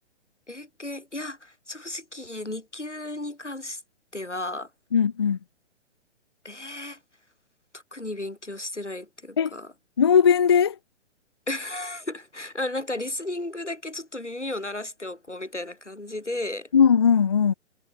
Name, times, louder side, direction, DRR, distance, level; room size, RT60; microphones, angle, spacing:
voice 1, 0.5-3.8 4.1-4.7 6.4-7.0 7.7-9.7 11.5-16.7, left 2 dB, 90° left, 2.5 m, -34 dB
voice 2, 4.9-5.4 9.4-9.5 10.0-10.8 16.7-17.5, left 7 dB, 25° left, 0.4 m, -19 dB
figure-of-eight pair, 125°, 34 cm